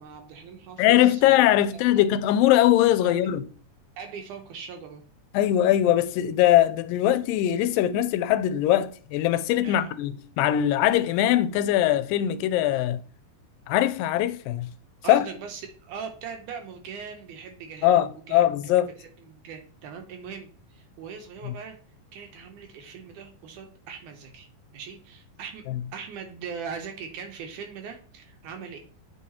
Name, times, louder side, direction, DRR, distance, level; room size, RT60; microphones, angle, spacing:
voice 1, 0.0-1.4 1.9-2.0 3.0-3.2 4.0-5.1 9.6-9.9 15.0-21.8 22.1-24.5 24.7-28.8, right 6 dB, 75° right, 2.1 m, -40 dB
voice 2, 0.8-3.4 5.3-13.0 13.7-14.7 15.1-15.3 17.8-18.9 21.5-21.6 25.7-25.8, left 12 dB, 90° left, 2.3 m, -21 dB
8.4 x 4.8 x 2.8 m
omnidirectional pair, 3.9 m